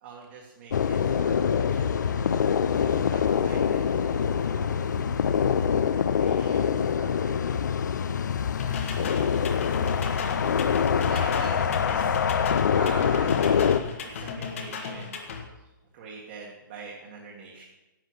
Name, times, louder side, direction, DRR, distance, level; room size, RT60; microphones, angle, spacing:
voice 1, 0.0-2.0 2.7-5.2 5.6-7.6 8.6-8.8 10.9-12.2 12.7-13.6 14.0-15.2 15.5-17.6, right 4 dB, 30° right, -3 dB, 1.5 m, -44 dB
sound 1, 0.7-13.8, left 7 dB, 55° left, 0.6 m, -25 dB
sound 2, 8.6-15.4, left 5 dB, 40° left, 1.3 m, -36 dB
10.5 x 7.8 x 6.4 m, 1.1 s
hypercardioid pair, 175°, 11 cm